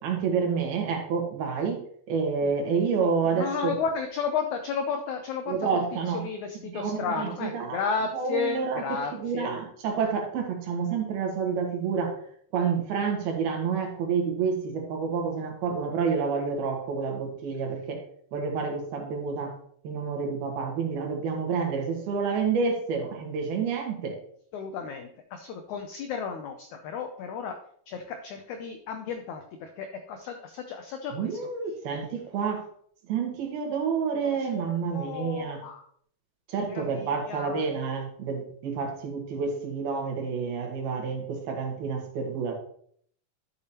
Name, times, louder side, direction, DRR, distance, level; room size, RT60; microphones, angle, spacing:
voice 1, 0.0-1.8 2.1-3.8 5.5-6.2 6.6-12.1 12.5-18.0 18.3-19.5 19.8-24.2 31.1-32.6 33.1-35.6 36.5-42.6, right 5 dB, 80° right, 2 dB, 3.5 m, -29 dB
voice 2, 3.0-5.8 6.1-9.5 24.5-27.6 27.9-31.4 34.2-35.8 36.7-37.6, left 6 dB, 85° left, 6 dB, 1.7 m, -33 dB
11.5 x 6.7 x 2.9 m, 0.62 s
omnidirectional pair, 4.3 m